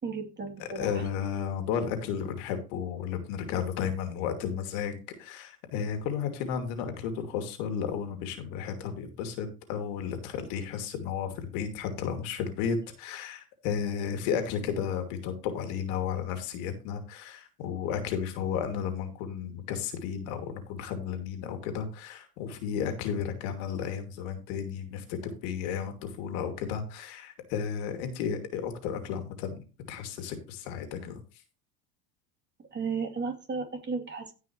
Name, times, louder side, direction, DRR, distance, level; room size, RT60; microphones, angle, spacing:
voice 1, 0.0-1.1 32.7-34.3, right 4 dB, 25° right, 2 dB, 3.0 m, -34 dB
voice 2, 0.6-31.2, left 7 dB, 70° left, 6 dB, 2.6 m, -33 dB
16.5 x 5.6 x 3.1 m, 0.33 s
hypercardioid pair, 90°, 44 cm